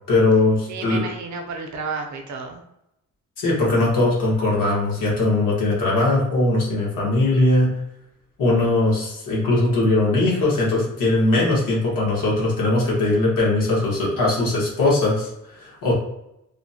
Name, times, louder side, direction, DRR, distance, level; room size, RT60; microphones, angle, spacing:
voice 1, 0.1-1.0 3.4-7.7 8.4-15.9, left 2 dB, 75° left, -5 dB, 1.3 m, -20 dB
voice 2, 0.7-2.6, right 4 dB, 60° right, 3 dB, 0.5 m, -31 dB
3.1 x 2.1 x 2.7 m, 0.83 s
wide cardioid pair, 165°, 33 cm